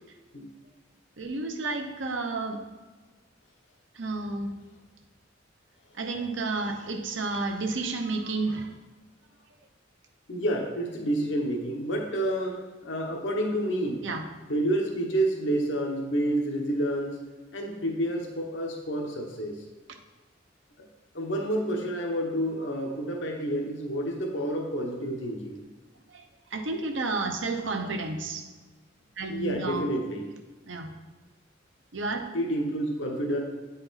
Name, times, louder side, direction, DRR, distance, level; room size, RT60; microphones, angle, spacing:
voice 1, 1.2-2.6 3.9-4.6 6.0-8.7 14.0-14.3 26.1-28.5 29.2-29.9 30.7-30.9 31.9-32.2, right 3 dB, 70° right, 4 dB, 0.8 m, -31 dB
voice 2, 10.3-14.0 14.5-17.2 17.5-19.6 21.1-25.6 29.3-30.3 32.3-33.4, right 1 dB, 65° left, 1 dB, 1.0 m, -29 dB
9.1 x 4.2 x 4.1 m, 1.3 s
head